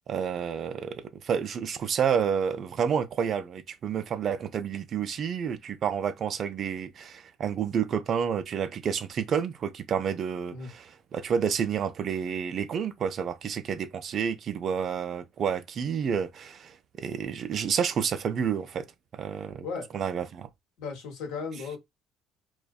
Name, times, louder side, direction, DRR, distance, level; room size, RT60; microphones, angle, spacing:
voice 1, 0.1-18.9 19.1-19.7 19.9-20.5, right 7 dB, 55° right, 0.3 m, -29 dB
voice 2, 20.8-21.8, left 5 dB, 80° left, 0.8 m, -35 dB
2.5 x 2.1 x 2.2 m
supercardioid pair, 70°, 0 cm